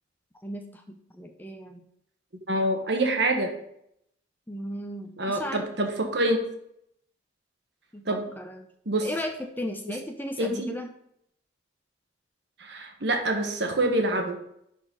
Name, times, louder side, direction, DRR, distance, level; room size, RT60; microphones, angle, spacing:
voice 1, 0.4-1.9 4.5-5.7 7.9-8.7 9.0-10.9, equal, 10° left, 5 dB, 0.5 m, -36 dB
voice 2, 2.5-3.5 5.2-6.4 8.0-8.2 8.9-9.1 10.4-10.7 12.6-14.4, right 1 dB, 60° right, 3 dB, 1.3 m, -26 dB
11.0 x 4.1 x 3.9 m, 0.74 s
head